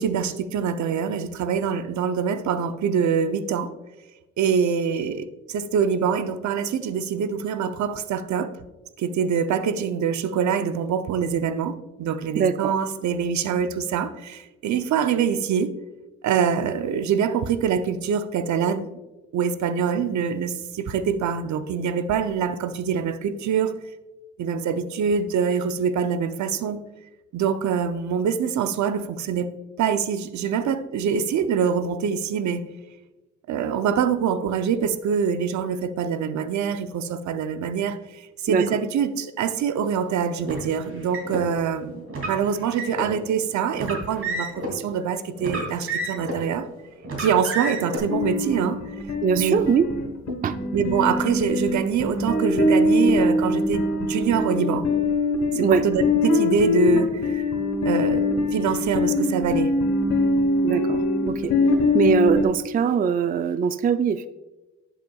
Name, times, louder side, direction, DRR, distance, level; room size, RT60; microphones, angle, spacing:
voice 1, 0.0-3.7 4.4-8.5 9.0-15.7 16.2-18.9 19.3-23.7 24.4-26.8 27.3-29.5 29.8-32.6 33.5-46.7 47.2-48.8 49.3-49.5 50.7-54.9 55.5-57.5 57.8-59.7, right 7 dB, 70° right, 0.6 m, -25 dB
voice 2, 12.4-12.7 38.5-38.7 49.2-49.9 50.3-50.6 55.5-55.9 60.6-61.5 61.9-64.3, right 6 dB, 30° right, 0.4 m, -22 dB
Car, 40.4-41.4 42.1-43.1 43.7-44.7 45.4-46.5 47.0-48.0, right 2 dB, 50° right, 2.9 m, -30 dB
sound 1, 48.1-62.4, left 2 dB, 70° left, 1.3 m, -23 dB
11.5 x 7.9 x 2.3 m
cardioid pair, 90°, 30 cm